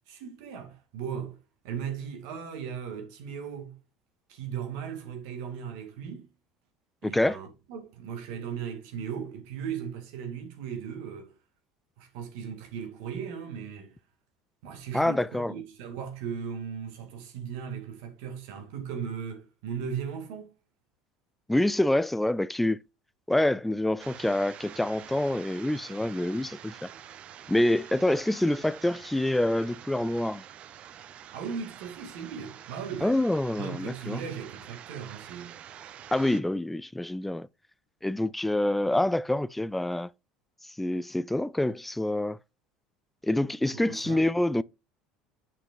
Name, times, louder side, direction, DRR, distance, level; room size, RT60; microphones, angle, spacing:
voice 1, 0.1-1.4 1.6-3.7 4.3-6.3 7.0-11.3 12.0-13.9 14.6-20.5 31.3-33.2 33.6-35.5 43.7-44.3, right 7 dB, 75° right, 1.9 m, -37 dB
voice 2, 7.0-7.4 14.9-15.5 21.5-22.8 23.3-26.9 27.5-30.4 33.0-34.2 36.1-37.5 38.0-40.1 40.8-42.4 43.2-44.6, left 1 dB, 5° left, 0.3 m, -26 dB
sound 1, 24.0-36.4, right 10 dB, 50° right, 0.5 m, -47 dB
7.8 x 5.9 x 2.5 m
supercardioid pair, 85°, 3 cm